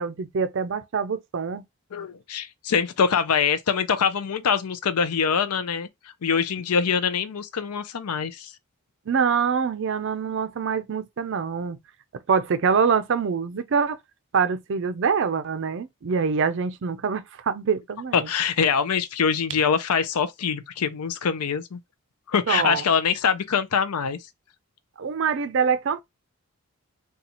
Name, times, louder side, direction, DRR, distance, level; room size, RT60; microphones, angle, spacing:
voice 1, 0.0-1.6 9.1-11.8 12.3-14.0 14.3-18.3 22.5-22.8 25.0-26.0, right 6 dB, 55° right, 0.4 m, -25 dB
voice 2, 1.9-5.9 6.2-8.5 18.1-21.8 22.3-24.2, left 6 dB, 85° left, 0.5 m, -24 dB
4.0 x 2.3 x 2.9 m
head